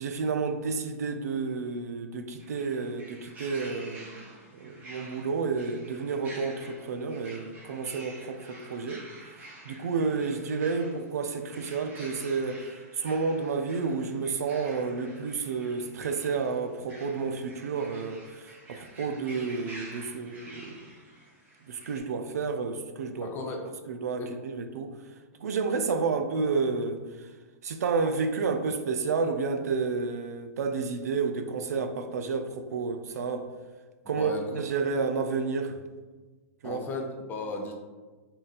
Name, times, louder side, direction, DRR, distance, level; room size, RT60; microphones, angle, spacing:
voice 1, 0.0-4.2 4.5-9.0 9.6-20.9 21.7-23.3 23.9-24.9 25.4-27.3 27.6-33.5 34.1-35.8 36.6-36.8, right 4 dB, 85° right, 7 dB, 0.5 m, -30 dB
sound 1, 2.4-22.0, right 1 dB, 20° right, 0.8 m, -49 dB
voice 2, 23.2-23.7 24.2-24.4 34.0-34.6 36.6-37.7, left 2 dB, 25° left, 2 dB, 0.6 m, -35 dB
3.8 x 2.4 x 4.1 m, 1.3 s
hypercardioid pair, 140°, 8 cm